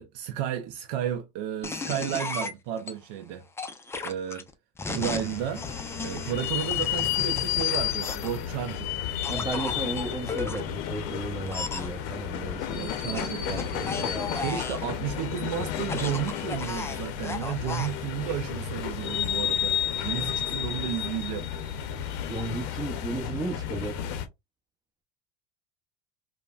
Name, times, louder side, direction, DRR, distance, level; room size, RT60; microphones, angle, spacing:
voice 1, 0.0-3.5 4.0-4.5 4.9-5.6 6.0-9.0 12.7-19.8 20.0-21.5, right 10 dB, 75° right, 0.4 m, -33 dB
sound 1, 1.6-2.9 3.6-8.4 9.2-10.6 11.5-11.9 13.1-14.9 15.8-17.9, left 4 dB, 10° left, 0.4 m, -35 dB
sound 2, 4.9-24.3, left 10 dB, 75° left, 0.6 m, -32 dB
voice 2, 9.3-13.2 13.8-14.5 22.3-24.0, right 3 dB, 20° right, 0.7 m, -35 dB
3.1 x 2.1 x 2.3 m
supercardioid pair, 105°, 21 cm